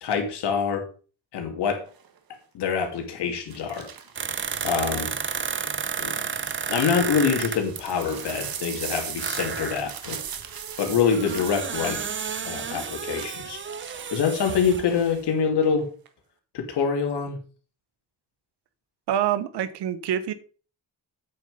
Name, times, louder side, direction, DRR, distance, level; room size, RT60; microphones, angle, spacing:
voice 1, 0.0-0.9 1.3-1.8 2.5-3.9 4.6-5.4 6.0-6.1 6.7-10.2 10.8-12.0 12.4-13.6 14.1-15.9 16.5-17.4, left 6 dB, 85° left, 2.7 m, -25 dB
sound 1, 1.9-2.2 3.5-5.4 6.0-15.2 15.6-16.1, right 8 dB, 60° right, 1.5 m, -40 dB
sound 2, 4.2-8.6 9.2-14.9 15.3-15.4, right 6 dB, 30° right, 0.7 m, -32 dB
voice 2, 19.1-20.3, right 10 dB, 90° right, 1.2 m, -26 dB
8.7 x 6.5 x 5.4 m
cardioid pair, 100°, 39 cm